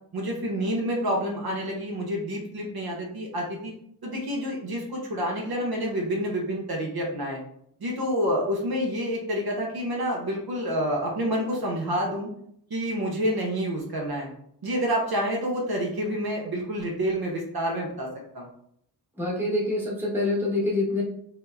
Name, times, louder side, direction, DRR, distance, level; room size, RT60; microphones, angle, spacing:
voice 1, 0.1-3.7 4.0-7.4 7.8-12.3 12.7-14.3 14.6-18.1 18.3-18.5, equal, 60° right, -1 dB, 0.6 m, -28 dB
voice 2, 19.2-21.0, left 2 dB, 5° right, -6 dB, 1.0 m, -26 dB
2.8 x 2.0 x 2.3 m, 0.70 s
cardioid pair, 50°, 42 cm